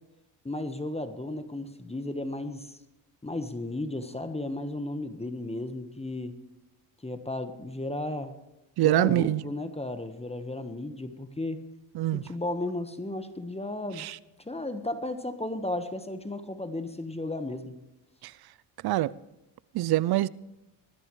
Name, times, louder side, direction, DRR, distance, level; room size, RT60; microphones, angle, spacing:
voice 1, 0.4-2.8 3.2-6.3 7.0-8.3 8.8-11.6 12.1-14.1 14.4-17.8, left 2 dB, 15° left, 1.3 m, -34 dB
voice 2, 8.8-9.4 12.0-12.2 14.0-14.1 18.8-19.1 19.7-20.3, right 15 dB, 50° right, 0.6 m, -24 dB
20.5 x 13.0 x 3.2 m
supercardioid pair, 65°, 49 cm